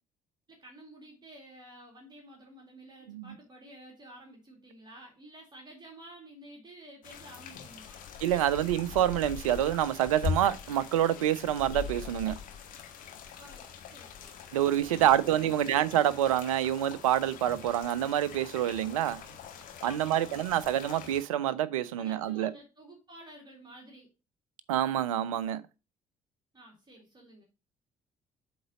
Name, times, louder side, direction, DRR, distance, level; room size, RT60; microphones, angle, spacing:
voice 1, 0.5-8.0 13.4-15.1 15.5-15.7 19.8-20.8 22.0-24.1 26.5-27.4, right 1 dB, 25° right, 2.4 m, -52 dB
sound 1, 7.0-21.2, left 7 dB, 50° left, 1.3 m, -42 dB
voice 2, 8.2-12.4 14.5-19.2 19.8-22.5 24.7-25.6, right 11 dB, 70° right, 0.5 m, -27 dB
7.8 x 3.9 x 5.0 m
figure-of-eight pair, 50°, 18 cm